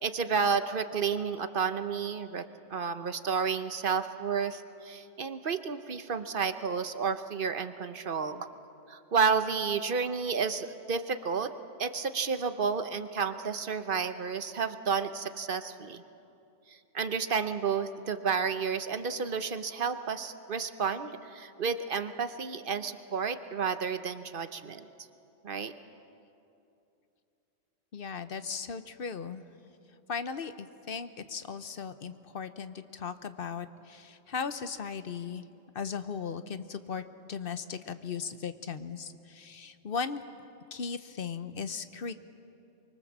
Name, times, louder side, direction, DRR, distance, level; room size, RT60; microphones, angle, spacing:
voice 1, 0.0-8.5 8.9-11.5 11.8-16.0 16.7-24.9 25.4-25.7, right 5 dB, 45° right, 10 dB, 1.0 m, -31 dB
voice 2, 27.9-29.4 30.1-35.4 35.7-37.0 37.3-40.2 40.7-42.1, left 6 dB, 50° left, 11 dB, 0.9 m, -37 dB
25.0 x 24.0 x 7.4 m, 2.7 s
omnidirectional pair, 1.3 m